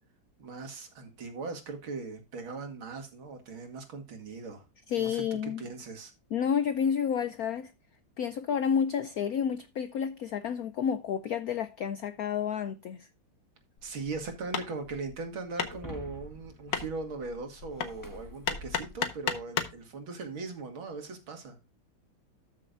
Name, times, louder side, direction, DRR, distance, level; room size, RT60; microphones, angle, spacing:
voice 1, 0.4-4.6 5.0-6.1 13.8-21.6, right 3 dB, 75° right, 2.9 m, -39 dB
voice 2, 4.9-5.7 6.3-7.7 8.2-13.1, left 7 dB, 80° left, 0.8 m, -30 dB
Hammer, 13.8-19.8, left 7 dB, 65° left, 1.8 m, -36 dB
Shatter, 15.7-19.2, left 1 dB, 10° left, 1.2 m, -50 dB
13.5 x 6.5 x 2.5 m
omnidirectional pair, 2.2 m